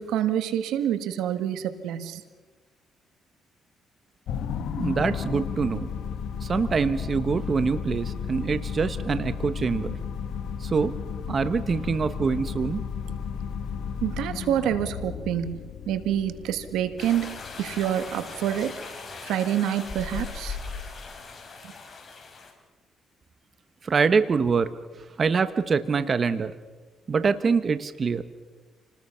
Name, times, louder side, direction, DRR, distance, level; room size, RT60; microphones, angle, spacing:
voice 1, 0.0-2.2 14.0-15.6 15.9-18.7 19.3-20.6, right 10 dB, 90° right, 11 dB, 1.5 m, -27 dB
sound 1, 4.3-18.8, left 7 dB, 75° left, 1.6 m, -33 dB
voice 2, 4.8-5.9 6.4-9.9 10.6-10.9 11.3-12.8 23.8-24.7 25.2-26.5 27.1-28.2, right 5 dB, 40° right, 12 dB, 1.1 m, -24 dB
sound 2, 17.0-22.5, left 4 dB, 40° left, 4.7 m, -39 dB
28.0 x 19.5 x 5.7 m, 1.3 s
cardioid pair, 90°, 0 cm